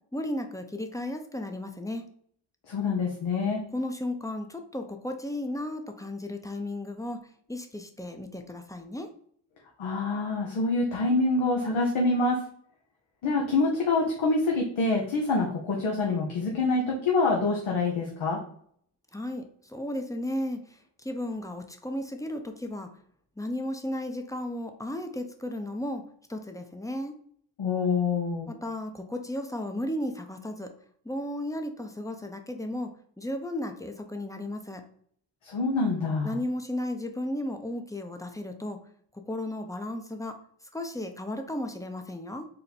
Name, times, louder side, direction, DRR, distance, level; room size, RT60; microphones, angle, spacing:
voice 1, 0.1-2.1 3.7-7.2 7.5-9.1 19.1-22.9 23.4-26.0 26.3-27.1 28.5-30.7 31.0-34.8 36.2-38.8 39.3-40.4 40.7-42.5, left 1 dB, 5° left, 5 dB, 0.6 m, -34 dB
voice 2, 2.7-3.6 9.8-12.4 13.2-18.4 27.6-28.5 35.4-36.3, left 3 dB, 75° left, 0 dB, 0.9 m, -26 dB
4.2 x 2.1 x 4.1 m, 0.63 s
cardioid pair, 40°, 48 cm